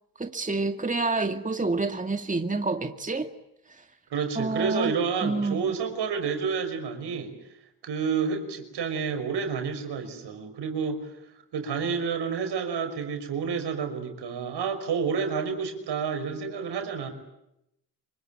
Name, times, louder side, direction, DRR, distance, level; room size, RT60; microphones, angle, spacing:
voice 1, 0.2-3.3 3.7-3.8 4.4-4.9 5.2-5.6, right 3 dB, 20° right, 7 dB, 2.2 m, -28 dB
voice 2, 4.1-7.3 7.8-11.1 11.5-17.1, right 6 dB, 70° right, 7 dB, 5.8 m, -29 dB
26.5 x 23.5 x 9.0 m, 0.84 s
supercardioid pair, 55°, 42 cm